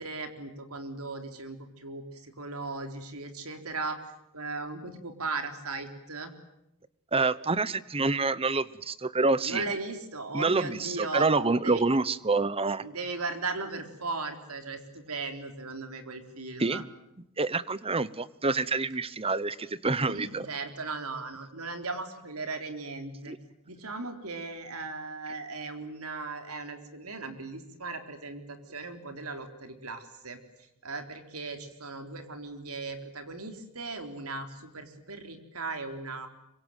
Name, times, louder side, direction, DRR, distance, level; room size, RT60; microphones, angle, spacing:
voice 1, 0.0-4.0 4.3-6.3 9.4-11.3 11.6-11.8 12.8-16.8 20.0-23.3 23.7-30.4 30.8-36.3, right 3 dB, 85° right, 7 dB, 3.9 m, -37 dB
voice 2, 7.1-9.6 10.3-12.8 16.6-16.8 17.4-20.5 23.3-23.4, right 3 dB, 25° right, 17 dB, 1.0 m, -27 dB
26.5 x 24.0 x 9.2 m, 0.84 s
head